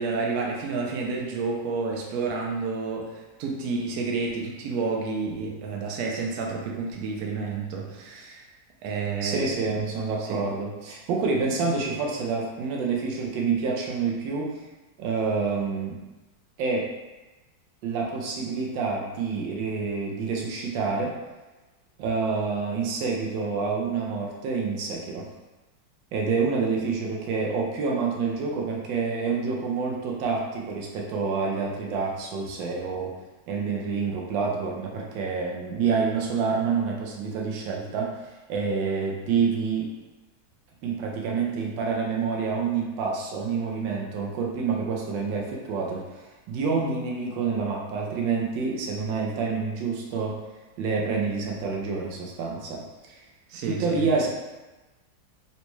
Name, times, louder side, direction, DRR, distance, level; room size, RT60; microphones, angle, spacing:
voice 1, 0.0-8.5 8.8-9.8 10.2-10.5 53.5-54.1, right 4 dB, 70° right, 0 dB, 0.9 m, -30 dB
voice 2, 9.2-14.5 15.0-16.0 16.6-16.9 17.8-21.1 22.0-25.2 26.1-33.1 33.5-39.9 40.8-50.4 50.8-53.2 53.7-54.3, right 5 dB, 90° right, -1 dB, 1.4 m, -28 dB
4.0 x 2.2 x 3.0 m, 1.1 s
omnidirectional pair, 2.0 m